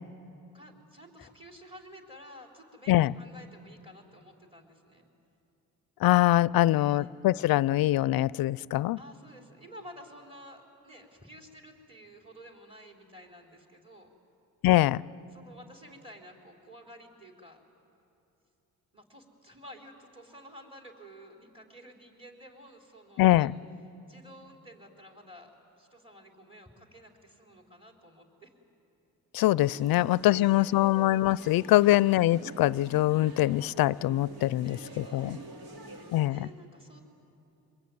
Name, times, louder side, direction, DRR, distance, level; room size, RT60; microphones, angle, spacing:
voice 1, 0.5-5.1 6.6-7.1 9.0-14.1 15.3-17.6 18.9-23.5 24.0-25.5 25.8-28.5 29.9-30.9 31.8-32.1 34.6-37.0, equal, 15° right, 1 dB, 4.3 m, -52 dB
voice 2, 6.0-9.0 14.6-15.0 23.2-23.5 29.3-35.4 36.1-36.5, left 15 dB, 70° left, 21 dB, 0.5 m, -23 dB
sound 1, 29.6-36.3, right 2 dB, 65° right, 2.9 m, -47 dB
24.5 x 21.0 x 9.3 m, 2.8 s
cardioid pair, 80°, 37 cm